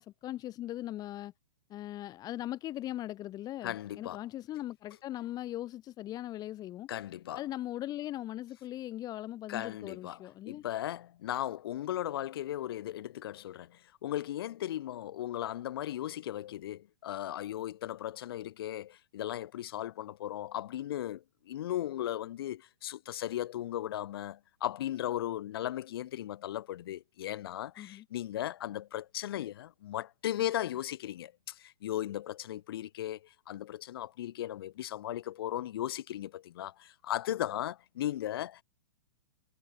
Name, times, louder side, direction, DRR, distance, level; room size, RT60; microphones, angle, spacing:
voice 1, 0.0-1.3 1.7-6.9 7.3-10.6 27.8-28.0, left 14 dB, 25° left, 2.6 m, -39 dB
voice 2, 3.6-4.2 6.9-7.4 9.5-38.6, left 12 dB, 60° left, 5.4 m, -37 dB
hypercardioid pair, 120°, 14 cm